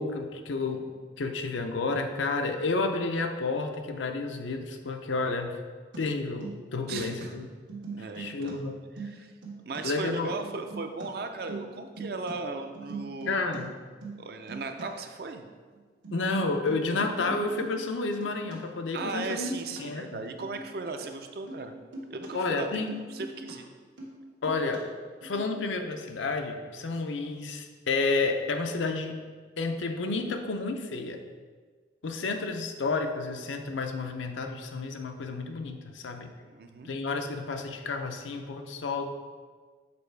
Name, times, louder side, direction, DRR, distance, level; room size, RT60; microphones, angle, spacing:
voice 1, 0.0-5.6 6.0-7.5 8.2-8.7 9.8-10.3 13.3-13.7 16.1-20.2 22.3-22.9 24.4-24.8 25.2-29.2 29.6-31.2 32.0-36.3 36.8-39.1, left 3 dB, 85° left, 5 dB, 0.6 m, -31 dB
sound 1, 5.9-6.0 6.3-7.2 7.5-8.5 8.8-9.8 10.2-11.0 11.3-12.3 12.6-13.6 13.9-14.2 14.5-14.8 15.4-15.5 15.7-18.6 18.8-19.2 19.4-19.8 20.3-21.1 21.3-21.7 21.9-22.3 22.7-23.5 23.8-24.2 24.4-24.8 25.2-25.4, right 3 dB, 85° right, 1.4 m, -42 dB
voice 2, 6.9-7.4 7.9-8.6 9.0-9.3 9.6-13.5 14.2-15.4 18.9-21.7 22.1-23.7 36.5-36.9, right 3 dB, 55° right, 6 dB, 0.4 m, -37 dB
6.8 x 4.5 x 3.3 m, 1.5 s
head